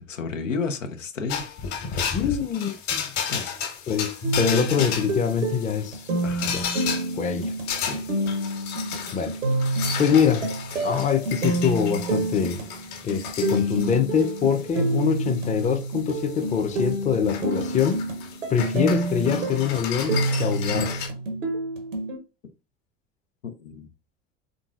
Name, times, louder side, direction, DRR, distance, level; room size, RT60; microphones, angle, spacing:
voice 1, 0.0-1.5 2.2-2.4 3.3-3.5 6.2-6.6 7.8-8.1 23.4-23.9, left 4 dB, 80° left, 0.8 m, -32 dB
sound 1, 1.3-21.1, left 7 dB, 50° left, 1.5 m, -34 dB
voice 2, 2.1-3.1 3.9-6.1 6.5-6.6 7.1-7.5 9.1-9.4 10.0-10.5 10.8-12.7 13.0-18.0 18.5-21.1, left 7 dB, 20° left, 0.6 m, -24 dB
sound 2, 4.2-22.2, right 2 dB, 80° right, 1.0 m, -28 dB
3.9 x 3.7 x 2.4 m
figure-of-eight pair, 75°, 37 cm